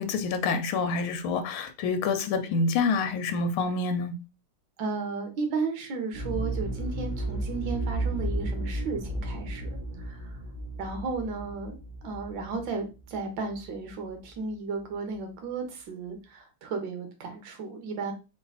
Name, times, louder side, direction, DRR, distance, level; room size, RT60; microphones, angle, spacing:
voice 1, 0.0-4.1, left 4 dB, 80° left, 1.6 m, -27 dB
voice 2, 4.8-10.4 10.8-11.8 12.0-18.1, right 4 dB, 65° right, 1.8 m, -34 dB
sound 1, 6.1-13.9 14.2-14.3, right 1 dB, 40° right, 0.7 m, -33 dB
3.9 x 3.3 x 3.9 m
omnidirectional pair, 2.3 m